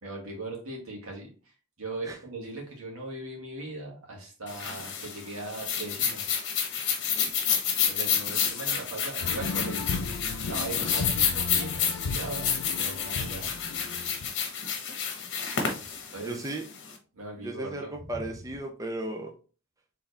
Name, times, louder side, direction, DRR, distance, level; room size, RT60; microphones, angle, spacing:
voice 1, 0.0-6.2 7.9-10.0 10.4-13.5 16.1-16.4 17.1-18.3, right 2 dB, 80° right, -1 dB, 1.8 m, -39 dB
sound 1, 4.5-16.9, left 7 dB, 55° left, 1.0 m, -29 dB
voice 2, 7.2-7.6 16.2-16.6 17.4-19.3, right 1 dB, 15° right, 3 dB, 0.5 m, -36 dB
sound 2, 9.2-14.3, left 4 dB, 90° left, 0.5 m, -35 dB
4.5 x 3.6 x 3.3 m, 0.37 s
head